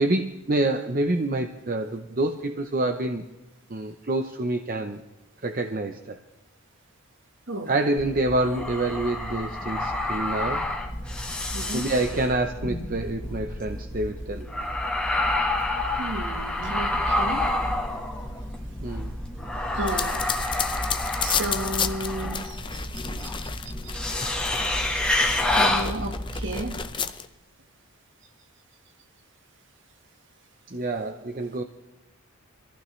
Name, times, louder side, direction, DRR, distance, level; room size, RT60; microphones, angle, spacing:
voice 1, 0.0-3.3 3.7-5.0 5.4-6.2 7.7-10.7 11.3-14.5 15.0-15.1 18.8-19.2 30.7-31.6, right 2 dB, 40° right, 0.7 m, -27 dB
sound 1, 8.0-26.8, left 1 dB, 5° left, 1.4 m, -29 dB
voice 2, 11.5-11.9 16.0-17.5 19.7-20.7 21.2-22.9 23.2-23.5 25.5-26.8, right 1 dB, 55° right, 1.5 m, -33 dB
sound 2, 19.9-24.9 25.3-27.3, left 7 dB, 20° left, 0.6 m, -32 dB
24.5 x 15.0 x 3.2 m
head